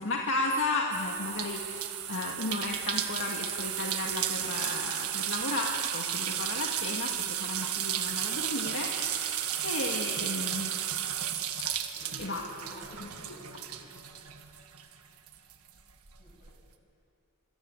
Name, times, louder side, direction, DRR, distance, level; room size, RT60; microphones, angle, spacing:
voice 1, 0.0-11.3 11.6-11.9 12.2-12.4 13.0-13.1, left 2 dB, 60° left, 0 dB, 2.1 m, -34 dB
sound 1, 0.9-14.9 15.3-16.5, right 10 dB, 90° right, 1.7 m, -33 dB
voice 2, 11.9-13.9 16.2-16.5, equal, 40° left, -1 dB, 7.9 m, -52 dB
26.5 x 24.5 x 8.0 m, 2.6 s
head